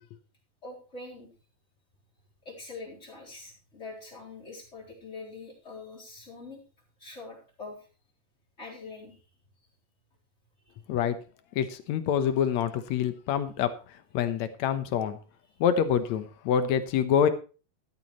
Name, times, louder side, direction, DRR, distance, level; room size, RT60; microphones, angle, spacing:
voice 1, 0.6-1.3 2.4-6.6 7.0-7.9 8.6-9.3 10.6-10.8, left 3 dB, 20° left, -3 dB, 3.9 m, -44 dB
voice 2, 11.6-13.7 14.1-15.2 15.6-17.3, left 8 dB, 65° left, 11 dB, 1.9 m, -26 dB
14.0 x 13.0 x 3.1 m, 0.35 s
omnidirectional pair, 4.2 m